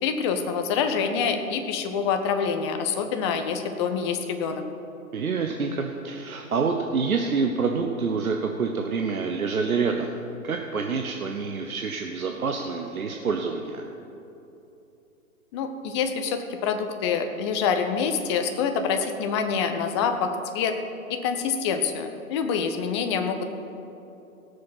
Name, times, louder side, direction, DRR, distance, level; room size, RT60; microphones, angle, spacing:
voice 1, 0.0-4.6 15.5-20.7 21.1-23.4, left 6 dB, 20° left, 7 dB, 0.6 m, -26 dB
voice 2, 5.1-10.1 10.4-13.8, right 5 dB, 75° right, 3 dB, 0.9 m, -27 dB
17.0 x 6.6 x 5.7 m, 2.9 s
figure-of-eight pair, 120°, 44 cm